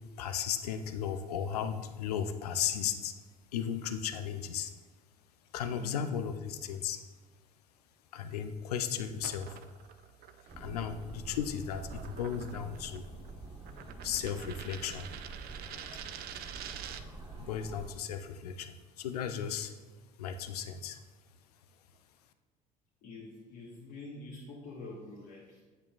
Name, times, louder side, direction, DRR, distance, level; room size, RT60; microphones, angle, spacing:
voice 1, 0.2-3.1 3.5-4.7 5.5-7.0 8.1-9.6 10.6-13.1 14.0-15.1 17.4-19.7 20.2-21.0, left 8 dB, 85° left, 9 dB, 0.5 m, -35 dB
voice 2, 5.7-6.0 23.0-25.6, left 2 dB, 60° left, -5 dB, 1.5 m, -46 dB
sound 1, 9.1-17.2, right 9 dB, 55° right, 0.5 m, -48 dB
sound 2, 10.5-18.0, right 3 dB, 25° right, 1.3 m, -46 dB
8.3 x 7.5 x 2.4 m, 1.4 s
hypercardioid pair, 60°, 19 cm